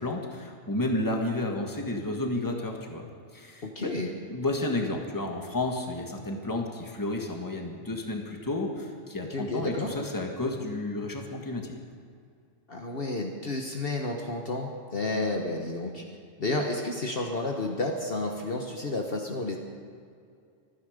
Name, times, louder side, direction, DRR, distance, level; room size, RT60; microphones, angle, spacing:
voice 1, 0.0-3.9 4.3-11.7, left 2 dB, 15° left, 2 dB, 1.6 m, -31 dB
voice 2, 3.6-4.1 9.3-9.9 12.7-16.0 16.4-19.6, left 2 dB, 50° left, 1 dB, 1.4 m, -31 dB
25.0 x 9.9 x 5.1 m, 2.3 s
omnidirectional pair, 1.3 m